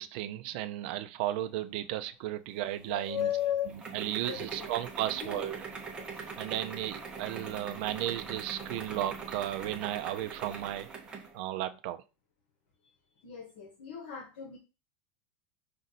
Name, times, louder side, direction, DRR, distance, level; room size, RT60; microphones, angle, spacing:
voice 1, 0.0-3.4 3.9-5.6 6.4-10.9 11.3-12.0, right 13 dB, 55° right, 0.4 m, -34 dB
sound 1, 2.5-11.4, right 5 dB, 15° right, 0.7 m, -43 dB
voice 2, 2.9-3.7 4.2-4.7 5.1-5.5 6.0-6.1 13.2-14.6, left 10 dB, 70° left, 1.2 m, -35 dB
5.1 x 2.6 x 4.0 m
supercardioid pair, 165°, 6 cm